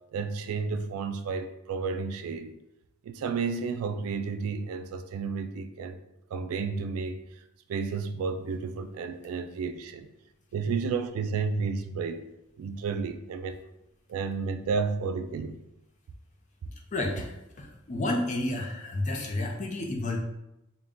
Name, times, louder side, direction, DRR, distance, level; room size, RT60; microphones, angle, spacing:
voice 1, 0.1-2.5 3.0-6.0 6.3-7.2 7.7-10.1 10.5-12.3 12.6-13.6 14.1-15.6, right 5 dB, 75° right, 0.3 m, -31 dB
voice 2, 16.9-20.2, left 2 dB, 35° left, 0.5 m, -31 dB
3.7 x 2.2 x 3.6 m
head